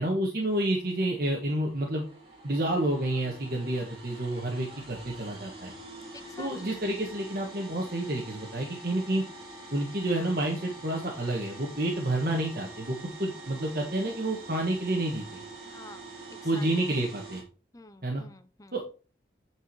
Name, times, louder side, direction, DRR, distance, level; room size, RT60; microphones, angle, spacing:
voice 1, 0.0-2.1 2.4-5.7 6.4-9.2 9.7-15.4 16.4-17.4 18.0-18.2 18.7-18.8, right 1 dB, 50° right, 0 dB, 1.5 m, -29 dB
sound 1, 0.6-17.4, right 2 dB, 30° right, 3.3 m, -46 dB
voice 2, 6.1-6.8 15.7-16.7 17.7-18.7, left 2 dB, 20° left, 11 dB, 0.6 m, -49 dB
9.0 x 4.8 x 4.7 m, 0.35 s
head